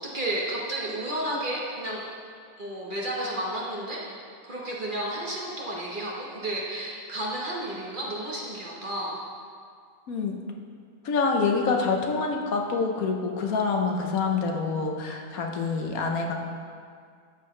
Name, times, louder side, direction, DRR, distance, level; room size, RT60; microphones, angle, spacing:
voice 1, 0.0-2.0 2.6-4.0 4.4-9.2, right 1 dB, 35° right, -4 dB, 1.3 m, -32 dB
voice 2, 11.0-16.3, left 4 dB, 70° left, 2 dB, 1.3 m, -26 dB
12.5 x 7.3 x 3.2 m, 2.1 s
omnidirectional pair, 1.6 m